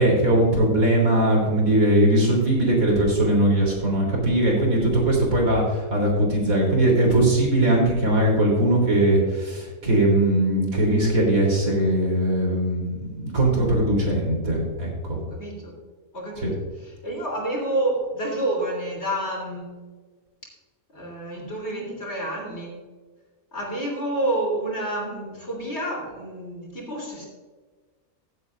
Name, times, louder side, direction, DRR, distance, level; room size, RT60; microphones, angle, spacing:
voice 1, 0.0-15.2 16.4-16.5, right 1 dB, 70° right, -2 dB, 3.9 m, -20 dB
voice 2, 15.3-15.7 16.1-16.5 16.8-19.7 20.9-22.8 23.5-27.2, right 1 dB, 50° left, -1 dB, 3.6 m, -29 dB
16.0 x 8.3 x 2.5 m, 1.4 s
omnidirectional pair, 1.5 m